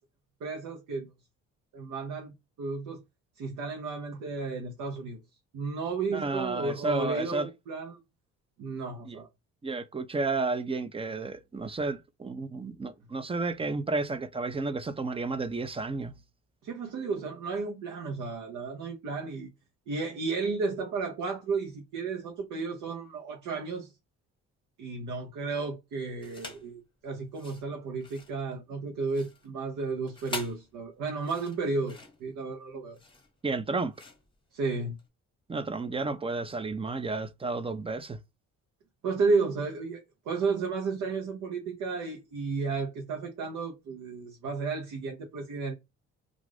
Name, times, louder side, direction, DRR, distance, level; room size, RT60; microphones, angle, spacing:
voice 1, 0.4-1.1 1.7-3.0 3.4-5.2 5.5-8.0 8.6-9.3 16.6-19.5 19.9-23.9 24.8-33.0 34.5-35.0 39.0-45.7, right 4 dB, 80° right, 0.8 m, -33 dB
voice 2, 6.1-7.5 9.1-9.2 9.6-16.1 33.4-33.9 35.5-38.2, right 3 dB, 20° right, 0.4 m, -32 dB
sound 1, 26.2-26.7 27.2-35.1, left 3 dB, 15° left, 1.0 m, -45 dB
2.5 x 2.4 x 3.2 m
cardioid pair, 90°, 30 cm